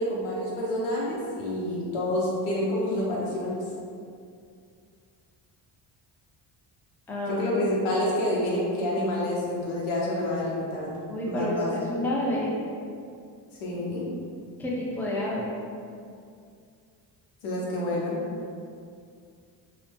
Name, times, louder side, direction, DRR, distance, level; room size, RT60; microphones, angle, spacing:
voice 1, 0.0-3.6 7.3-10.9 11.3-11.9 13.6-14.0 17.4-18.3, left 1 dB, 85° left, -5 dB, 0.9 m, -28 dB
voice 2, 7.1-7.4 11.1-12.6 14.6-15.5, left 1 dB, 5° left, -5 dB, 0.4 m, -29 dB
2.8 x 2.0 x 3.3 m, 2.3 s
cardioid pair, 90°, 48 cm